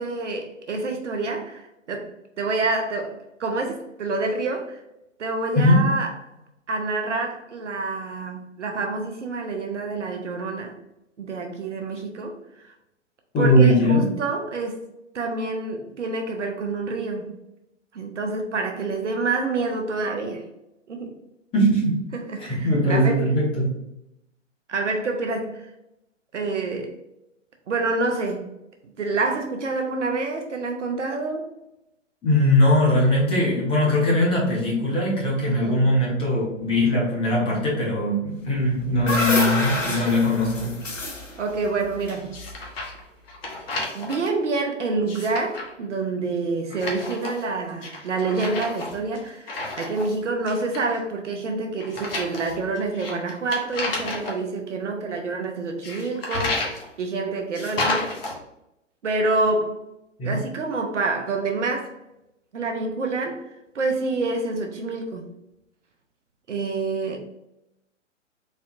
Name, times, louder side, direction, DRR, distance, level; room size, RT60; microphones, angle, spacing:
voice 1, 0.0-4.8 5.2-6.1 6.7-10.8 11.2-12.4 12.6-12.7 13.4-14.8 15.1-17.3 17.9-20.4 20.9-21.1 22.1-23.3 24.7-25.7 26.3-27.0 27.7-28.5 29.0-31.5 35.5-36.1 39.7-40.0 41.4-42.3 43.9-58.1 59.0-59.8 60.2-61.9 62.5-63.4 63.7-65.2 66.5-67.2, right 3 dB, 70° right, 3 dB, 0.6 m, -27 dB
voice 2, 13.3-14.0 21.5-22.0 22.4-23.7 32.2-40.7 60.2-60.4, left 1 dB, 15° left, -6 dB, 1.0 m, -20 dB
sound 1, 38.6-42.8, left 1 dB, 80° left, 0.9 m, -28 dB
sound 2, 42.3-43.0 43.3-44.3 44.9-45.7 46.7-47.5 47.8-50.2 50.5-51.0 51.8-54.4 55.8-56.8 57.5-58.3, left 2 dB, 50° left, 1.0 m, -31 dB
4.2 x 2.7 x 2.4 m, 0.88 s
figure-of-eight pair, 120°, 37 cm